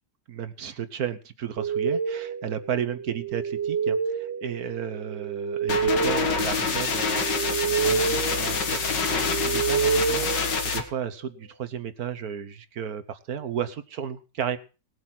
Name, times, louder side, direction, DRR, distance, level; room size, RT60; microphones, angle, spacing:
voice 1, 0.3-14.6, right 8 dB, 60° right, 11 dB, 1.4 m, -33 dB
sound 1, 1.6-11.3, right 6 dB, 40° right, 1.8 m, -29 dB
sound 2, 5.7-10.8, left 5 dB, 80° left, 2.4 m, -26 dB
19.0 x 7.8 x 6.0 m, 0.35 s
omnidirectional pair, 1.9 m